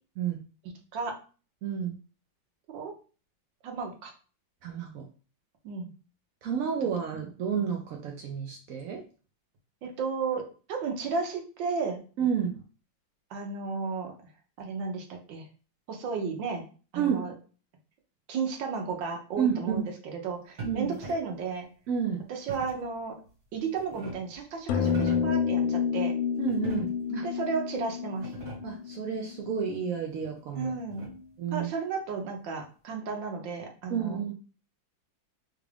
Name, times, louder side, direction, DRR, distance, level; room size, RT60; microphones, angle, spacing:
voice 1, 1.6-1.9 4.6-5.1 6.4-9.0 12.2-12.6 17.0-17.3 19.4-19.8 20.6-20.9 21.9-22.2 26.4-27.2 28.6-30.7 31.4-31.7 33.9-34.3, right 7 dB, 90° right, 1 dB, 0.7 m, -30 dB
voice 2, 3.6-4.1 5.6-5.9 6.8-6.9 9.8-10.4 10.7-12.0 13.3-14.1 14.6-15.5 15.9-16.6 16.9-17.3 18.3-19.8 20.1-21.7 22.3-23.1 23.5-26.1 27.2-28.3 30.5-31.1 31.5-34.2, right 5 dB, 75° right, 3 dB, 1.4 m, -33 dB
sound 1, 20.6-21.4 22.5-22.9 23.5-24.4 24.8-25.4 26.5-27.2 27.7-27.8 28.1-28.8 30.2-31.4, right 1 dB, 50° right, 1.9 m, -43 dB
sound 2, 24.7-29.3, left 7 dB, 80° left, 1.3 m, -29 dB
3.6 x 2.4 x 3.3 m, 0.37 s
omnidirectional pair, 2.1 m